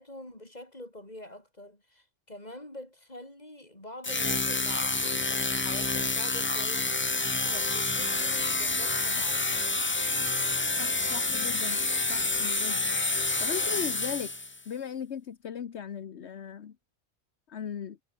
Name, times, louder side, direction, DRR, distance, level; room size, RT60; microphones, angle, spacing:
voice 1, 0.0-6.9 7.4-9.8, left 1 dB, 35° left, 7.3 m, -46 dB
sound 1, 4.0-14.6, left 3 dB, 20° left, 0.3 m, -28 dB
voice 2, 10.8-12.8 13.4-16.7 17.5-18.0, left 8 dB, 70° left, 1.3 m, -38 dB
omnidirectional pair, 1.2 m